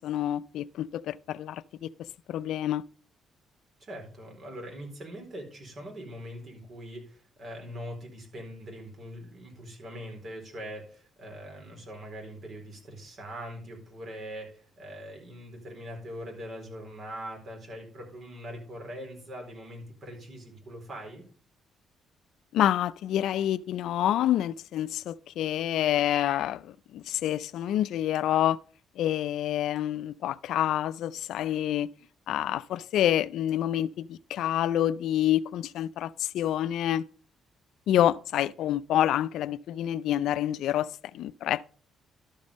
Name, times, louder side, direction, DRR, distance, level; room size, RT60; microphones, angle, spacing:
voice 1, 0.0-1.9 2.3-2.8 22.5-28.6 29.0-31.9 32.3-37.0 37.9-41.6, left 12 dB, 80° left, 0.4 m, -27 dB
voice 2, 3.8-21.2, equal, 50° right, 4.3 m, -42 dB
12.0 x 5.3 x 5.2 m
cardioid pair, 90°, 0 cm